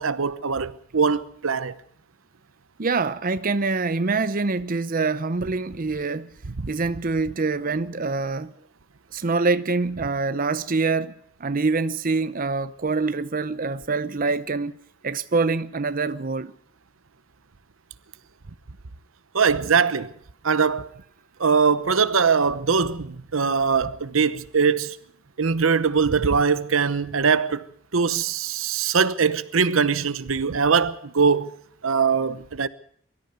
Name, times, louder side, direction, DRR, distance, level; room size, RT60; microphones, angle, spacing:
voice 1, 0.0-1.7 19.3-20.1 20.4-20.9 21.4-25.0 25.4-27.6 27.9-31.5 31.8-32.7, right 5 dB, 85° right, 0.9 m, -22 dB
voice 2, 2.8-6.3 6.7-8.5 9.1-11.1 11.4-14.7 15.0-16.5, right 3 dB, 45° right, 0.8 m, -25 dB
23.0 x 14.0 x 8.1 m
head